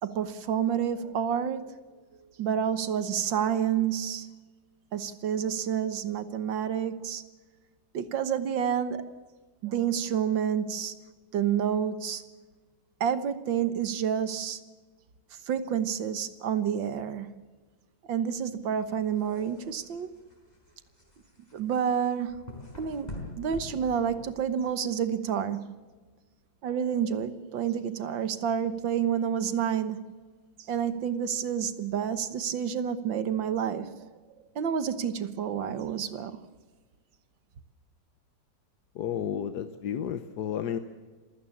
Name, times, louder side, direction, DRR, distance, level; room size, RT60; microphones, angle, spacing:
voice 1, 0.0-1.8 2.4-4.3 4.9-7.2 7.9-9.1 9.6-11.0 11.3-12.2 13.0-14.6 15.5-17.3 18.1-20.1 21.5-22.4 22.8-25.7 26.6-30.0 30.7-34.1 34.6-36.4, right 8 dB, 80° right, 1.9 m, -29 dB
sound 1, 18.8-24.7, left 1 dB, 20° left, 5.0 m, -45 dB
voice 2, 38.9-40.8, left 9 dB, 65° left, 1.4 m, -32 dB
26.5 x 16.0 x 7.2 m
omnidirectional pair, 2.0 m